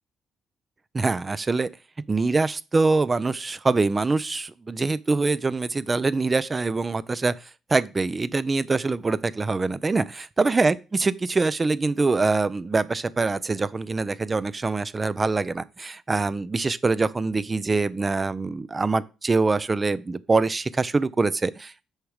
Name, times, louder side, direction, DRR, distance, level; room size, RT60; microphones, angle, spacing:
voice 1, 0.9-1.7 2.1-7.3 7.7-21.9, right 3 dB, 25° right, 0.5 m, -24 dB
6.5 x 4.8 x 6.4 m
cardioid pair, 90°, 0 cm